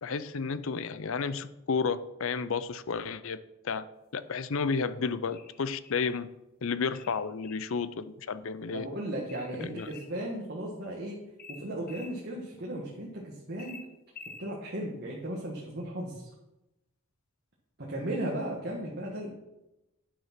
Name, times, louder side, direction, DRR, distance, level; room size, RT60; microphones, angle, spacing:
voice 1, 0.0-3.4 3.6-3.9 4.1-6.3 6.6-8.9 9.6-9.9, left 5 dB, 65° left, 14 dB, 0.5 m, -32 dB
sound 1, 5.3-6.2 6.9-7.7 9.3-10.2 11.4-12.1 13.6-14.5, left 4 dB, 45° left, 1.1 m, -48 dB
voice 2, 8.7-11.2 11.5-13.8 14.4-16.3 17.8-19.3, right 1 dB, 50° right, -3 dB, 1.5 m, -36 dB
9.6 x 6.5 x 5.9 m, 0.95 s
head